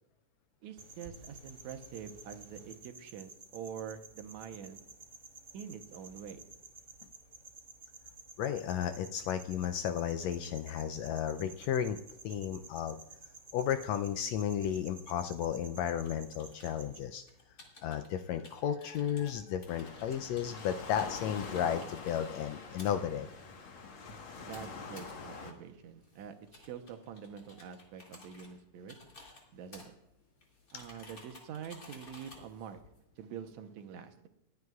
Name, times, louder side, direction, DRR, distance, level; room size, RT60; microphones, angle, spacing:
voice 1, 0.6-4.8 5.5-6.4 24.4-29.0 29.5-29.9 30.7-32.8 33.2-34.3, right 8 dB, 75° right, 7 dB, 2.1 m, -46 dB
sound 1, 0.8-17.1, right 3 dB, 35° right, 2.4 m, -53 dB
voice 2, 8.4-12.0 12.2-13.0 13.5-17.2 17.8-23.3, left 9 dB, 80° left, 8 dB, 1.6 m, -33 dB
sound 2, 16.0-33.5, left 2 dB, 30° left, 2.4 m, -57 dB
Waves surf, 19.7-25.5, left 4 dB, 55° left, 1.9 m, -45 dB
21.5 x 9.5 x 2.3 m, 0.85 s
omnidirectional pair, 3.4 m